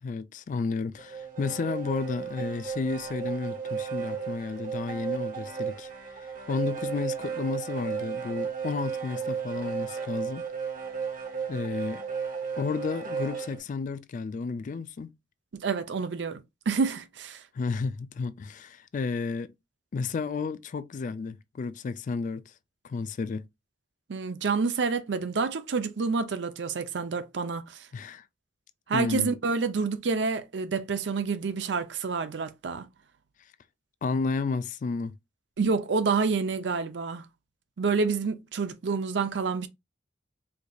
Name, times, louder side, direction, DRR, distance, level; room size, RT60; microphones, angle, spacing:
voice 1, 0.0-10.5 11.5-12.0 12.6-15.1 17.5-19.5 19.9-22.5 22.8-23.4 27.9-28.2 28.9-29.3 34.0-35.2, left 4 dB, 45° left, 0.3 m, -32 dB
sound 1, 1.0-13.6, right 6 dB, 50° right, 1.0 m, -34 dB
voice 2, 15.6-17.4 24.1-27.8 28.9-32.9 35.6-37.2 37.8-39.7, right 4 dB, 75° right, 0.5 m, -28 dB
4.5 x 2.6 x 2.3 m
head